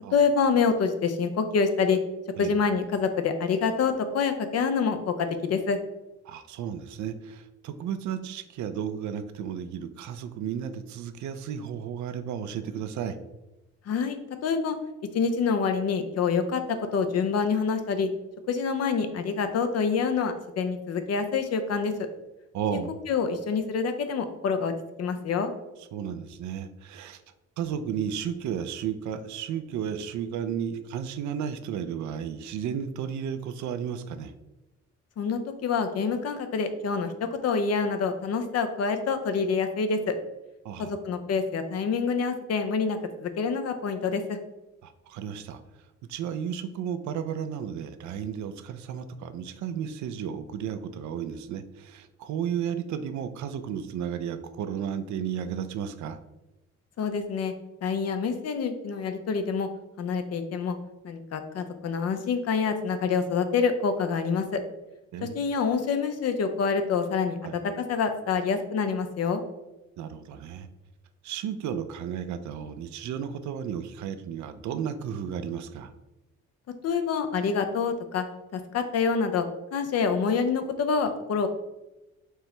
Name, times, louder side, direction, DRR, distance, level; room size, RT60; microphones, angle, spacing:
voice 1, 0.1-2.0 2.4-5.8 13.9-14.8 15.1-16.6 16.9-18.1 18.5-21.9 22.7-22.8 23.1-24.7 25.0-25.5 35.2-40.1 40.8-44.4 57.0-57.5 57.8-59.7 60.0-60.8 61.0-64.6 65.2-67.4 67.9-69.4 76.8-78.2 78.5-79.5 79.7-81.5, left 5 dB, 55° left, 8 dB, 0.6 m, -26 dB
voice 2, 6.3-13.2 22.5-22.9 25.8-27.2 27.6-34.3 40.6-40.9 44.8-45.6 46.1-56.2 65.1-65.4 67.4-67.5 70.0-70.7 71.2-75.9, right 8 dB, 70° right, 11 dB, 0.5 m, -33 dB
4.5 x 2.8 x 3.3 m, 1.0 s
cardioid pair, 90°, 30 cm